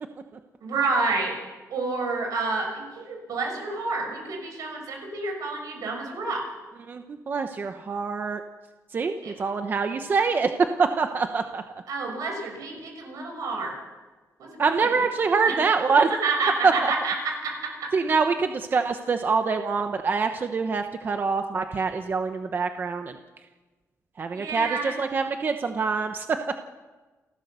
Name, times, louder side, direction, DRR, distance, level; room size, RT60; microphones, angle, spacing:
voice 1, 0.6-1.4 1.7-6.4 9.2-9.3 11.9-13.7 14.4-14.9 15.4-15.6 16.1-17.9 24.3-24.9, right 3 dB, 80° right, 2 dB, 6.4 m, -29 dB
voice 2, 6.8-8.4 8.9-11.6 14.6-16.1 16.6-16.9 17.9-23.2 24.2-26.4, right 4 dB, 35° right, 6 dB, 0.9 m, -25 dB
28.5 x 15.0 x 6.8 m, 1.3 s
wide cardioid pair, 170°, 6 cm